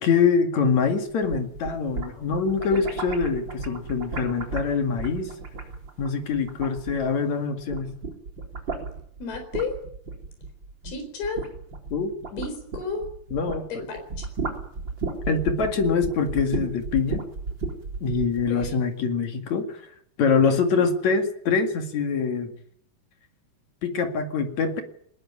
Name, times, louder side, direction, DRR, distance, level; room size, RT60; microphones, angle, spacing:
voice 1, 0.0-5.3 6.0-8.0 11.9-12.4 13.3-13.9 15.3-17.2 18.0-19.8 20.2-22.5 23.8-24.8, left 5 dB, 50° left, 6 dB, 3.1 m, -24 dB
sound 1, 1.1-7.3 7.6-13.7 14.0-18.8, right 4 dB, 30° right, 4.1 m, -34 dB
voice 2, 9.2-9.7 10.8-11.4 12.4-13.0 13.7-14.3 18.5-18.7, left 4 dB, 75° left, 5 dB, 6.2 m, -32 dB
20.5 x 20.0 x 9.7 m, 0.67 s
omnidirectional pair, 4.4 m